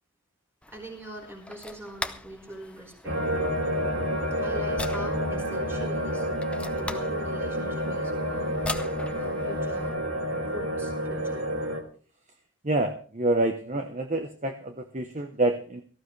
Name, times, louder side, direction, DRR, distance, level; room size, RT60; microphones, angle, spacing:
sound 1, 0.6-9.9, left 2 dB, 5° left, 0.6 m, -41 dB
voice 1, 0.7-3.2 4.3-6.3 6.7-8.7 9.1-10.0 10.3-11.4, right 1 dB, 10° right, 1 dB, 4.5 m, -43 dB
sound 2, 3.0-11.8, equal, 70° right, 2.5 m, -29 dB
voice 2, 12.6-15.8, right 2 dB, 35° right, 5 dB, 0.9 m, -27 dB
18.0 x 14.5 x 3.3 m, 0.42 s
head